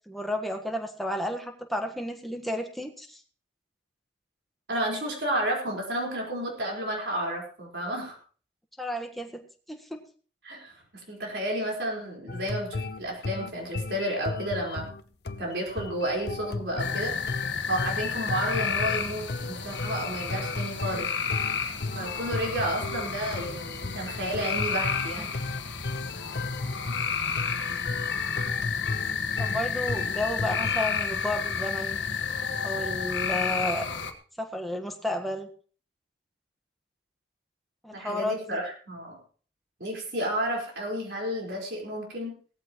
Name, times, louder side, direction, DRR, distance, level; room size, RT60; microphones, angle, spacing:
voice 1, 0.1-3.2 8.8-10.0 29.4-32.0 32.6-33.9 34.4-35.5 37.8-38.6, left 1 dB, ahead, 4 dB, 1.4 m, -32 dB
voice 2, 4.7-8.1 10.4-10.8 11.1-14.9 15.4-17.1 17.7-21.1 21.9-25.4 37.9-39.2 39.8-42.3, right 1 dB, 65° right, -2 dB, 4.6 m, -31 dB
sound 1, 12.3-30.8, left 3 dB, 60° left, 0.8 m, -35 dB
sound 2, 16.8-34.1, left 6 dB, 80° left, 1.5 m, -31 dB
17.5 x 14.5 x 3.1 m, 0.41 s
head